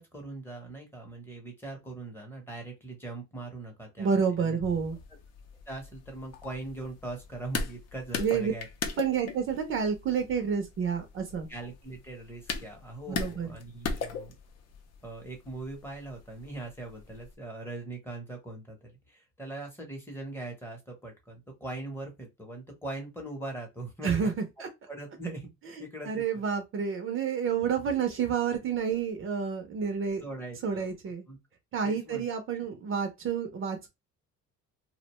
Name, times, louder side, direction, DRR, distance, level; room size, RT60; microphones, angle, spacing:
voice 1, 0.0-4.6 5.7-8.7 11.5-14.3 15.0-24.3 24.9-25.5 25.8-26.4 30.2-30.9 31.3-31.4 31.8-32.3 32.5-32.6, right 2 dB, 5° left, 0.7 m, -41 dB
voice 2, 4.0-5.0 8.2-8.5 9.0-11.5 13.1-13.5 24.0-24.3 24.6-24.7 26.0-30.2 30.6-31.2 31.7-33.9, right 6 dB, 45° right, 0.5 m, -29 dB
sound 1, 4.6-17.3, left 5 dB, 55° left, 0.6 m, -40 dB
2.4 x 2.1 x 2.9 m
cardioid pair, 140°, 30 cm